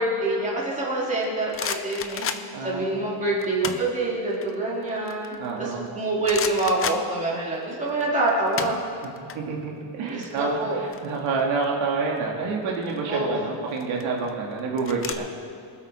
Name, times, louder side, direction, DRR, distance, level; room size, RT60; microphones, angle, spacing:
voice 1, 0.0-2.3 2.6-8.8 10.1-10.8 13.1-13.4, right 2 dB, 15° right, -6 dB, 3.0 m, -26 dB
sound 1, 1.1-2.7 3.4-3.9 4.3-5.9 6.2-7.6 7.9-9.4 9.6-9.8 10.1-11.6 12.6-13.0 13.7-15.1, left 7 dB, 30° left, 0.5 m, -33 dB
voice 2, 2.5-2.9 5.4-5.9 9.3-15.3, right 4 dB, 70° right, -2 dB, 2.2 m, -28 dB
24.5 x 8.3 x 4.3 m, 2.5 s
cardioid pair, 175°, 49 cm